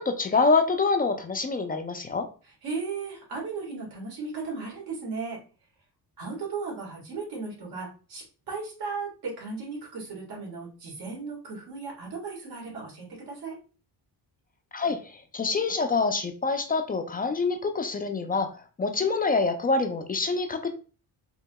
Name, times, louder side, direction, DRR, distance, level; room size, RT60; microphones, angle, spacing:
voice 1, 0.0-2.3 14.7-20.7, left 4 dB, 25° left, 6 dB, 0.4 m, -26 dB
voice 2, 2.6-5.4 6.2-13.6, right 4 dB, 70° right, -1 dB, 1.8 m, -36 dB
4.7 x 2.8 x 2.2 m, 0.36 s
cardioid pair, 120°, 39 cm